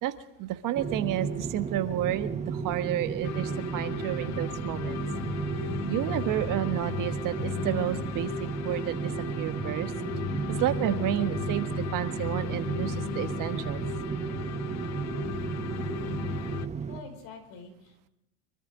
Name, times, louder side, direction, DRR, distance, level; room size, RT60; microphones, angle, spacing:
voice 1, 0.4-5.0 5.8-9.9 10.5-13.8, right 12 dB, 45° right, 10 dB, 1.4 m, -31 dB
sound 1, 0.8-17.0, right 6 dB, 15° right, 1.0 m, -34 dB
sound 2, 3.2-16.7, left 13 dB, 40° left, 0.6 m, -37 dB
voice 2, 16.9-18.1, left 4 dB, 60° left, 5 dB, 4.7 m, -47 dB
25.0 x 13.5 x 3.7 m, 0.88 s
supercardioid pair, 125°, 45 cm